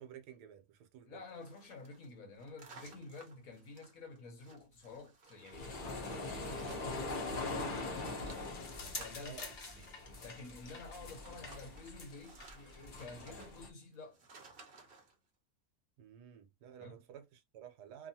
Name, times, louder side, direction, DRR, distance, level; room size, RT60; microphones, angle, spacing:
voice 1, 0.0-1.2 9.2-9.5 16.0-18.1, right 9 dB, 80° right, 1.2 m, -52 dB
voice 2, 1.1-8.6 9.0-9.9 10.2-14.2 16.8-17.0, left 3 dB, 60° left, 1.1 m, -51 dB
sound 1, 1.3-7.4 7.7-15.2, right 3 dB, 45° right, 0.8 m, -59 dB
sound 2, 5.5-13.7, left 2 dB, 45° left, 0.7 m, -42 dB
2.8 x 2.3 x 2.7 m
omnidirectional pair, 1.8 m